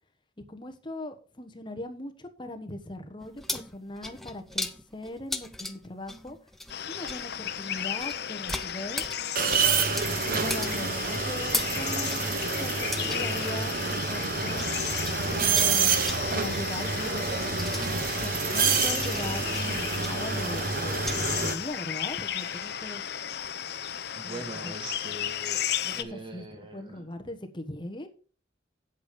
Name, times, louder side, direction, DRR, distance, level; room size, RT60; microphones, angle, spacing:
voice 1, 0.4-6.4 6.9-9.1 10.0-14.7 15.3-17.6 18.1-23.0 24.2-24.7 25.8-28.1, left 1 dB, 25° left, 1.1 m, -40 dB
sound 1, 3.2-14.8 15.0-21.2, left 1 dB, ahead, 0.6 m, -38 dB
sound 2, 6.7-26.0, left 10 dB, 55° left, 0.7 m, -34 dB
sound 3, 9.4-21.5, right 5 dB, 50° right, 1.0 m, -28 dB
voice 2, 24.2-27.1, right 1 dB, 25° right, 1.7 m, -42 dB
8.4 x 8.1 x 5.1 m
head